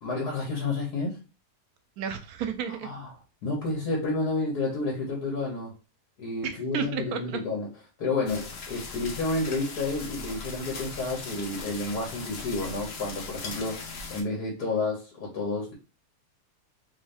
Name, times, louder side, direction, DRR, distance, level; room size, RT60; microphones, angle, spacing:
voice 1, 0.0-1.2 2.8-3.1 3.4-5.7 6.2-7.7 8.0-15.7, left 3 dB, 85° left, -3 dB, 1.7 m, -30 dB
voice 2, 2.0-2.9 6.4-7.4, right 8 dB, 75° right, 8 dB, 1.1 m, -32 dB
sound 1, 8.3-14.2, left 4 dB, 55° left, 0.8 m, -39 dB
3.4 x 2.7 x 3.3 m, 0.30 s
omnidirectional pair, 1.7 m